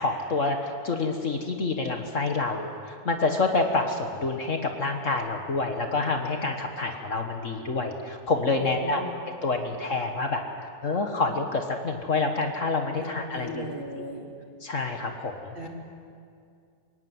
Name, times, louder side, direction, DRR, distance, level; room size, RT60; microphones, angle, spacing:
voice 1, 0.0-9.1 9.4-10.4 10.8-13.7 14.6-15.7, left 3 dB, 50° left, 4 dB, 1.7 m, -27 dB
voice 2, 8.6-9.1 13.0-14.3 15.5-15.7, equal, 30° right, 0 dB, 2.9 m, -37 dB
22.5 x 17.5 x 9.5 m, 2.4 s
omnidirectional pair, 1.8 m